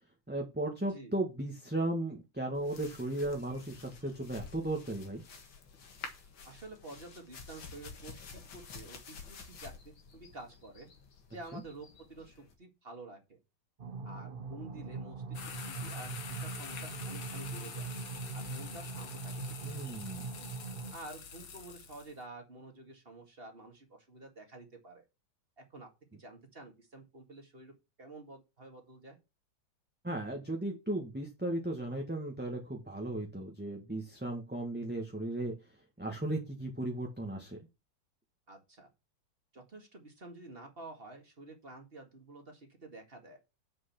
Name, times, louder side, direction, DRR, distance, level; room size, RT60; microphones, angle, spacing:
voice 1, 0.3-5.2 11.5-11.6 19.6-20.2 30.0-35.5 36.0-37.6, right 1 dB, 5° right, 1 dB, 1.3 m, -36 dB
sound 1, 2.6-12.5, left 5 dB, 70° left, 2.3 m, -50 dB
voice 2, 6.4-10.9 11.3-13.4 14.0-17.9 18.3-19.9 20.9-25.1 25.6-27.7 28.0-29.2 38.5-38.9 39.5-43.4, right 2 dB, 30° right, 4 dB, 2.1 m, -50 dB
sound 2, 13.8-20.9, right 4 dB, 55° right, 0.6 m, -41 dB
sound 3, 15.3-22.1, left 6 dB, 90° left, 2.3 m, -46 dB
7.7 x 6.2 x 5.9 m, 0.26 s
omnidirectional pair, 2.2 m